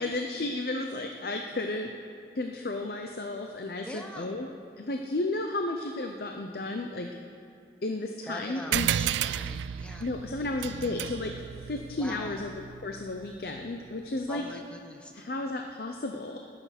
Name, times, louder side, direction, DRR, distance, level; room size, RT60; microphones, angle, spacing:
voice 1, 0.0-1.9 2.3-4.5 4.8-7.1 7.8-9.0 10.0-11.3 11.6-14.4 15.1-16.4, left 2 dB, 55° left, 4 dB, 0.6 m, -33 dB
voice 2, 3.8-4.3 8.3-10.1 11.9-12.4 14.3-15.3, equal, 5° left, 3 dB, 0.8 m, -43 dB
sound 1, 8.7-13.6, right 10 dB, 85° right, 0.3 m, -33 dB
19.5 x 6.7 x 5.9 m, 2.5 s
head